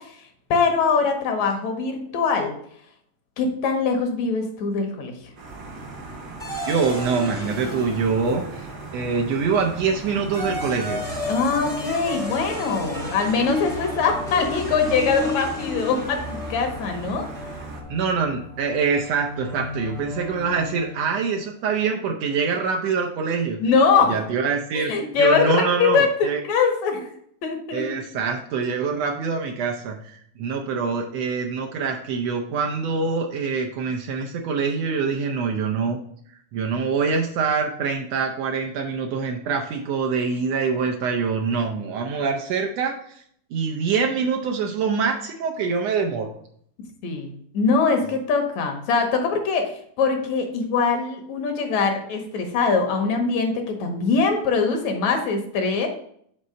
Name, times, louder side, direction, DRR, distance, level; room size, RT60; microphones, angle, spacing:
voice 1, 0.0-2.5 3.4-5.3 11.3-17.3 23.6-24.3 24.7-27.1 27.4-27.8 47.0-55.9, left 5 dB, 70° left, 5 dB, 2.1 m, -22 dB
sound 1, 5.4-17.8, right 3 dB, 50° right, 1.2 m, -38 dB
sound 2, 6.4-9.0 10.0-21.2, left 2 dB, ahead, 0.8 m, -33 dB
voice 2, 6.7-8.7 8.9-11.2 17.9-23.6 24.1-24.9 25.2-26.4 27.7-36.0 36.5-43.2 43.5-46.3, right 5 dB, 75° right, 2 dB, 1.6 m, -25 dB
5.5 x 4.2 x 6.2 m, 0.65 s
omnidirectional pair, 3.4 m